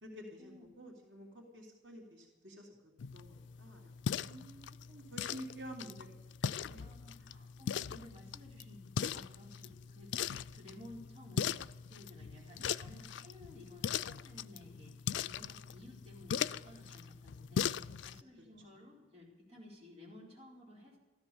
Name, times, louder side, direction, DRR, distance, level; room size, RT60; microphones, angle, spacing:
voice 1, 0.0-4.6 4.9-6.2 6.4-6.8 12.3-12.7 18.4-18.5, equal, 90° right, -1 dB, 3.0 m, -51 dB
sound 1, 3.0-18.2, left 8 dB, 85° left, 0.4 m, -40 dB
voice 2, 6.8-11.5 11.9-14.9 15.2-17.7 18.0-21.0, left 1 dB, 35° right, -3 dB, 4.5 m, -55 dB
14.5 x 13.0 x 7.1 m, 1.2 s
head